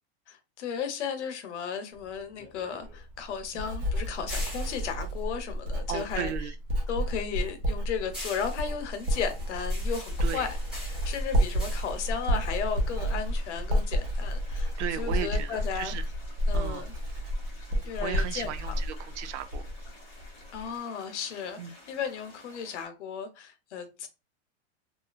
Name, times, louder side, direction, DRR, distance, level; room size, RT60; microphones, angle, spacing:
voice 1, 0.3-6.3 6.9-16.0 16.5-16.9 17.8-18.5 20.5-21.6 21.9-24.1, left 7 dB, 80° left, 0.8 m, -35 dB
sound 1, 1.9-6.4 6.8-13.2, equal, ahead, 0.9 m, -45 dB
Writing, 2.8-19.9 20.2-20.6, equal, 50° right, 1.0 m, -30 dB
voice 2, 5.9-6.5 10.2-10.5 14.8-16.0 16.5-16.8 18.0-19.7 21.6-21.7, right 10 dB, 80° right, 0.5 m, -35 dB
sound 2, 9.8-22.9, left 2 dB, 25° left, 1.2 m, -53 dB
2.6 x 2.5 x 2.3 m
supercardioid pair, 175°, 34 cm